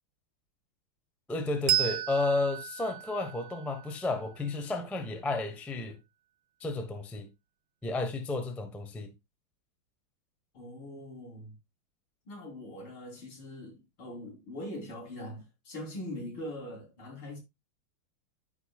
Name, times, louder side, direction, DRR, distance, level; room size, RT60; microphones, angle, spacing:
voice 1, 1.3-6.0 6.6-7.3 7.8-9.1, left 2 dB, ahead, 0.6 m, -32 dB
Bell, 1.7-4.8, right 13 dB, 85° right, 1.4 m, -33 dB
voice 2, 10.5-11.6 12.3-17.4, left 1 dB, 85° left, 4.4 m, -42 dB
13.0 x 4.9 x 2.3 m
omnidirectional pair, 2.3 m